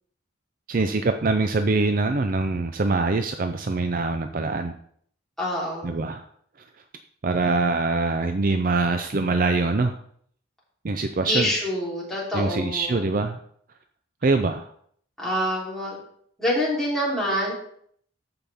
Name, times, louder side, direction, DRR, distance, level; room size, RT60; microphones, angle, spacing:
voice 1, 0.7-4.8 5.8-6.2 7.2-9.9 10.8-11.5 12.3-13.4 14.2-14.7, right 3 dB, 40° right, 7 dB, 0.5 m, -23 dB
voice 2, 5.4-6.0 11.3-13.1 15.2-16.0 16.4-17.5, equal, ahead, -7 dB, 3.5 m, -26 dB
14.0 x 5.8 x 3.5 m, 0.62 s
head